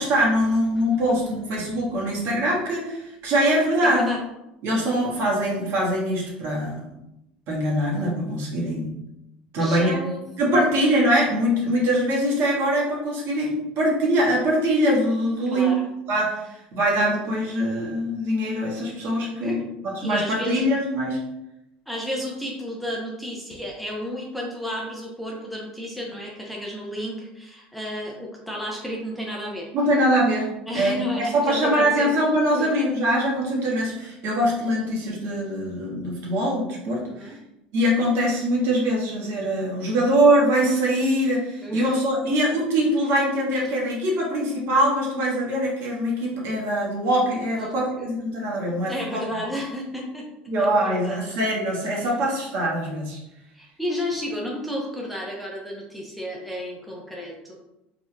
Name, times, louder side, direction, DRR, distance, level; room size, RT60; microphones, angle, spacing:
voice 1, 0.0-4.1 4.6-6.8 7.5-9.0 9.5-10.0 10.4-15.8 16.1-21.2 29.7-30.5 30.7-37.4 37.7-49.2 50.5-53.2, equal, 55° right, -4 dB, 1.5 m, -23 dB
voice 2, 3.8-4.2 9.6-10.2 10.5-10.7 15.5-15.8 19.4-19.6 20.0-20.6 21.9-29.7 30.7-32.1 32.5-32.7 37.1-37.4 41.6-41.9 47.6-48.1 48.9-50.3 50.6-51.2 52.0-52.1 53.5-57.6, equal, ahead, -2 dB, 0.8 m, -32 dB
4.2 x 2.9 x 2.3 m, 0.90 s
hypercardioid pair, 80°, 5 cm